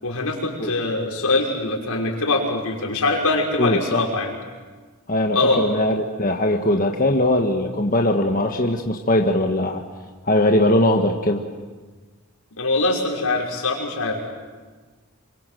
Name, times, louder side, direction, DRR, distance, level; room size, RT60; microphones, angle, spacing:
voice 1, 0.0-4.3 5.3-5.6 12.6-14.2, left 2 dB, 85° left, -1 dB, 5.9 m, -23 dB
voice 2, 3.6-4.0 5.1-9.8 10.2-11.4, left 1 dB, 40° left, 2 dB, 1.5 m, -20 dB
27.5 x 25.0 x 7.8 m, 1.4 s
head